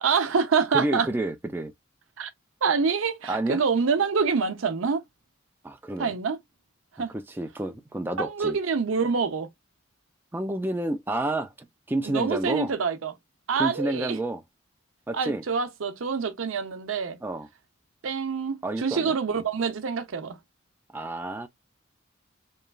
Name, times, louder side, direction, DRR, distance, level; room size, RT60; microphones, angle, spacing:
voice 1, 0.0-1.1 2.2-2.3 2.6-5.0 6.0-6.4 7.0-7.1 8.2-9.5 12.0-13.1 13.5-14.2 15.1-17.2 18.0-20.4, right 5 dB, 80° right, 0.6 m, -26 dB
voice 2, 0.7-1.7 3.3-3.6 5.6-6.1 7.1-8.6 10.3-12.7 13.6-14.4 15.1-15.4 17.2-17.5 18.6-19.2 20.9-21.5, right 1 dB, 10° right, 0.3 m, -29 dB
3.0 x 2.3 x 2.2 m
head